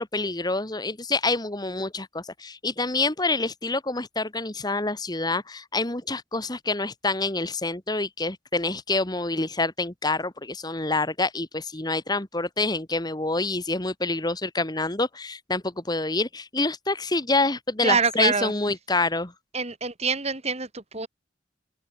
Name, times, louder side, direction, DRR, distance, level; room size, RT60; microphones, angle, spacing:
voice 1, 0.0-19.3, left 3 dB, 20° left, 1.8 m, -27 dB
voice 2, 17.8-18.5 19.5-21.1, right 5 dB, 35° right, 4.0 m, -25 dB
head